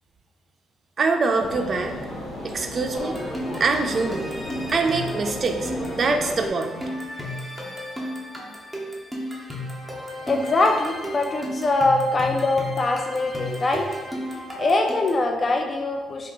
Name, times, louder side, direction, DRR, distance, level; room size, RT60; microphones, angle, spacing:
voice 1, 1.0-1.9 2.4-3.2 3.6-4.3 4.7-6.9, right 3 dB, 45° right, 4 dB, 0.3 m, -24 dB
sound 1, 1.4-6.5, left 1 dB, 65° left, 1.0 m, -34 dB
sound 2, 3.0-15.3, equal, ahead, 0.7 m, -34 dB
voice 2, 10.3-13.9 14.3-16.3, left 2 dB, 35° left, 3 dB, 0.3 m, -23 dB
2.7 x 2.3 x 3.6 m, 1.3 s
cardioid pair, 90°, 0 cm